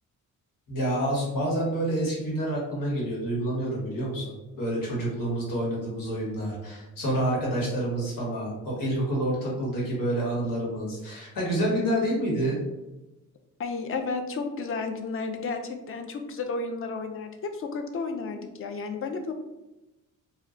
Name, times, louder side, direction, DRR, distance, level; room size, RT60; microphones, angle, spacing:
voice 1, 0.7-12.6, right 1 dB, 85° left, -4 dB, 1.3 m, -28 dB
voice 2, 13.6-19.3, left 4 dB, 45° left, 5 dB, 0.4 m, -32 dB
2.2 x 2.2 x 3.6 m, 1.0 s
cardioid pair, 125°, 32 cm